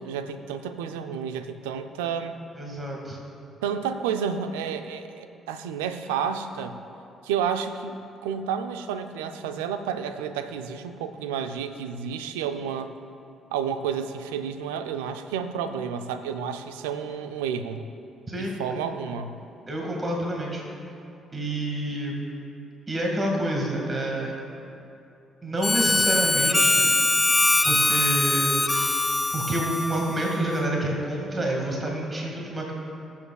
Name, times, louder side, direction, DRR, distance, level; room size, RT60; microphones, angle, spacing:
voice 1, 0.0-2.3 3.6-6.8 7.2-12.9 13.5-17.8 18.4-19.4, right 7 dB, 80° right, 9 dB, 0.5 m, -31 dB
voice 2, 2.6-3.2 18.3-18.6 19.7-20.6 21.3-22.1 22.9-24.4 25.4-26.9 27.6-28.6 29.3-32.7, right 1 dB, 30° right, -1 dB, 2.0 m, -28 dB
Harmonica, 25.6-30.8, left 2 dB, 20° left, 0.5 m, -23 dB
21.0 x 7.2 x 2.4 m, 2.7 s
hypercardioid pair, 45°, 0 cm